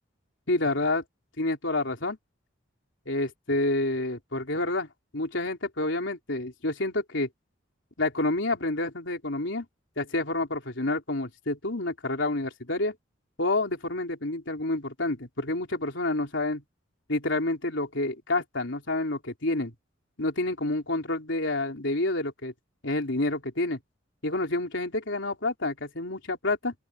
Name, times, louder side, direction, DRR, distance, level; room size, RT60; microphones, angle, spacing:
voice 1, 0.5-1.0 1.4-2.2 3.1-4.9 5.1-7.3 8.0-9.7 10.0-13.0 13.4-16.6 17.1-19.7 20.2-22.5 22.8-23.8 24.2-26.7, left 2 dB, 70° left, 3.6 m, -28 dB
open air
head